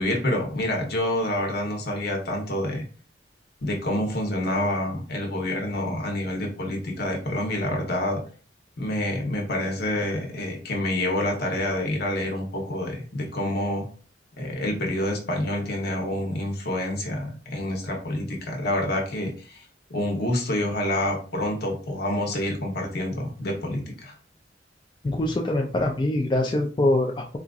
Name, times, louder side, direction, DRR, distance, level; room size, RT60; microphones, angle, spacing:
voice 1, 0.0-2.8 3.6-8.2 8.8-13.9 14.4-19.6 19.9-24.1, left 1 dB, 60° left, 1 dB, 1.0 m, -27 dB
voice 2, 25.0-27.4, left 1 dB, 25° left, 0 dB, 0.4 m, -24 dB
4.3 x 2.5 x 2.4 m, 0.40 s
head